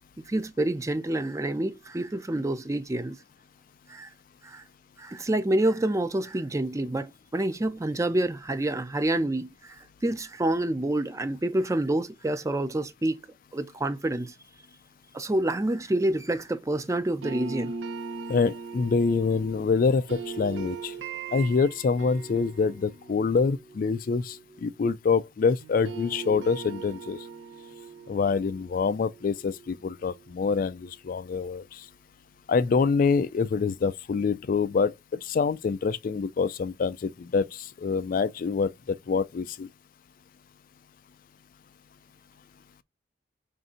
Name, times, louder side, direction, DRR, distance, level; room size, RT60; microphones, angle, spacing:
voice 1, 0.2-3.2 3.9-4.1 4.4-4.6 5.0-13.2 13.5-14.3 15.1-17.7, right 1 dB, 15° right, 0.4 m, -28 dB
sound 1, 17.2-25.3 25.6-30.6, right 4 dB, 85° right, 0.7 m, -40 dB
voice 2, 18.3-20.9 21.3-24.4 24.6-27.2 28.1-31.8 32.5-39.7, left 5 dB, 50° left, 0.3 m, -26 dB
5.1 x 2.6 x 3.7 m
head